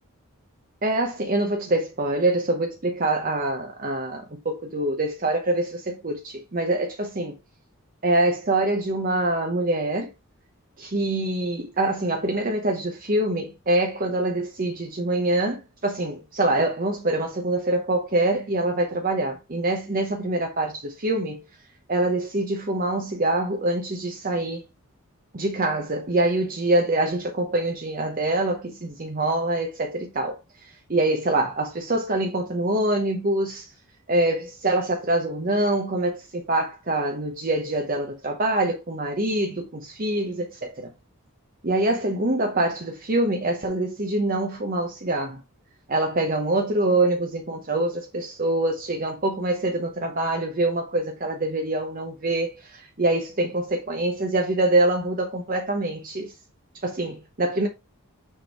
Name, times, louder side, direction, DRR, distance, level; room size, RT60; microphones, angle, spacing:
voice 1, 0.8-7.4 8.0-10.1 10.8-21.4 21.9-24.6 25.3-33.7 34.1-40.9 41.6-45.4 45.9-56.3 56.8-57.7, right 2 dB, 40° right, 0.9 m, -25 dB
6.6 x 3.5 x 4.6 m
head